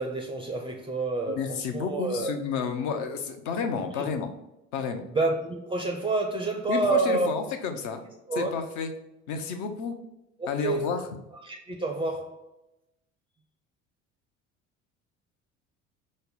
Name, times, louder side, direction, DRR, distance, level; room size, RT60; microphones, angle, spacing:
voice 1, 0.0-2.4 3.8-4.1 5.1-7.5 8.3-8.5 10.4-10.9 11.3-12.4, right 3 dB, 15° right, 2 dB, 0.5 m, -29 dB
voice 2, 1.4-4.3 4.7-5.0 6.7-8.0 8.4-8.9 9.3-9.9 10.5-11.0, left 6 dB, 50° left, 7 dB, 0.7 m, -30 dB
5.2 x 2.1 x 4.0 m, 0.90 s
figure-of-eight pair, 60°, 39 cm